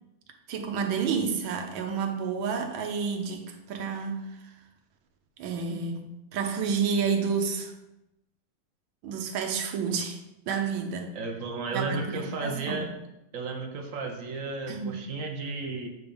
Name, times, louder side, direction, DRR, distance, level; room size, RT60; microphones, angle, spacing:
voice 1, 0.5-4.5 5.4-7.7 9.0-10.2 10.5-11.2 11.7-12.9 14.7-15.0, right 6 dB, 90° right, 4 dB, 1.6 m, -30 dB
voice 2, 11.1-12.9 13.3-15.9, right 3 dB, 60° right, 3 dB, 0.9 m, -33 dB
7.8 x 3.5 x 5.2 m, 0.92 s
omnidirectional pair, 2.1 m